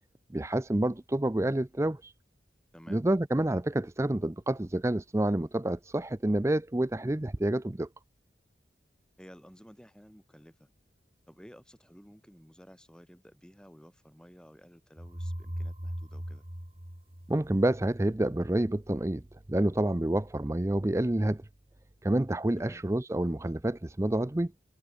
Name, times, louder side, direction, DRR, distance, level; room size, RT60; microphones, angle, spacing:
voice 1, 0.3-2.1 2.9-7.9 17.3-19.2 19.5-21.4 22.0-24.5, right 1 dB, 15° right, 0.5 m, -28 dB
voice 2, 2.7-3.0 9.2-10.7 11.3-16.5 22.6-22.8, equal, 5° left, 7.5 m, -54 dB
sound 1, 15.0-17.9, equal, 30° right, 3.1 m, -39 dB
head